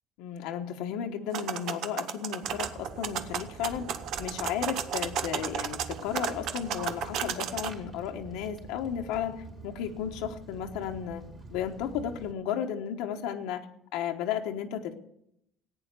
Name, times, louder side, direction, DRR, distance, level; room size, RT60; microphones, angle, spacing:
voice 1, 0.2-3.9 4.2-11.2 11.5-13.6 13.9-14.9, left 9 dB, 85° left, 3 dB, 1.2 m, -34 dB
sound 1, 1.3-7.7, right 8 dB, 65° right, 0.9 m, -34 dB
Walk footsteps, 2.4-12.3, right 3 dB, 35° right, 3.8 m, -46 dB
15.0 x 9.1 x 6.7 m, 0.78 s
cardioid pair, 120°, 0 cm